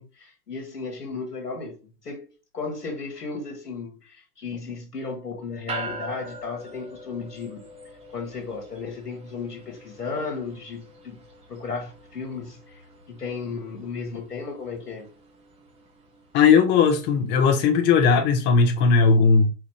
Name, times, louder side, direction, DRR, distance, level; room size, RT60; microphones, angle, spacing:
voice 1, 0.0-7.7 8.1-11.2 11.5-12.8 13.1-15.1, left 4 dB, 85° left, 1.4 m, -35 dB
sound 1, 5.7-17.3, right 2 dB, 15° right, 1.3 m, -43 dB
voice 2, 16.3-19.5, left 5 dB, 25° left, 0.7 m, -18 dB
4.1 x 2.5 x 3.1 m
figure-of-eight pair, 110°, 45 cm